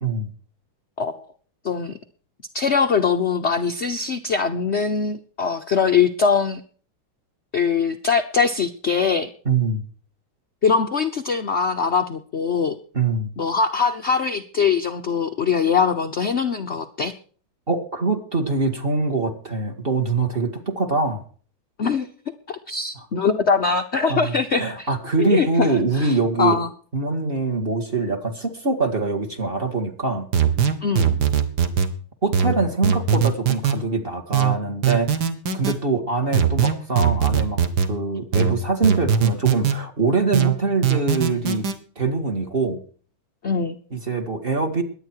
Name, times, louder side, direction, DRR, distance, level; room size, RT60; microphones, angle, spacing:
voice 1, 0.0-0.3 9.5-9.8 12.9-13.3 17.7-21.2 23.0-23.1 24.1-26.6 26.9-30.3 32.2-35.1 35.5-41.7 42.0-42.8 43.9-44.8, right 3 dB, 25° right, 5 dB, 1.9 m, -23 dB
voice 2, 2.5-6.6 7.5-9.3 10.6-12.8 13.4-17.1 21.8-22.1 22.5-24.9 25.2-26.7 30.8-31.2 43.4-43.8, left 5 dB, 70° left, 6 dB, 0.6 m, -22 dB
sound 1, 30.3-31.9 32.3-33.8 34.3-35.8 36.3-37.9 38.3-39.8 40.3-41.8, right 7 dB, 55° right, 1.8 m, -20 dB
22.0 x 9.0 x 4.6 m, 0.42 s
omnidirectional pair, 2.3 m